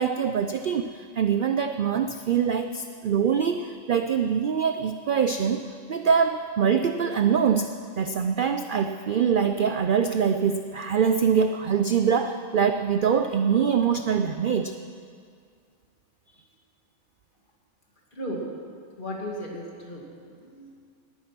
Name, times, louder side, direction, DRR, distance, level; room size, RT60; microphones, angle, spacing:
voice 1, 0.0-7.7 8.0-14.7, right 7 dB, 60° right, 8 dB, 0.5 m, -24 dB
voice 2, 18.1-18.5 19.0-20.8, equal, 40° left, -2 dB, 2.5 m, -36 dB
19.0 x 9.5 x 6.0 m, 2.2 s
omnidirectional pair, 1.4 m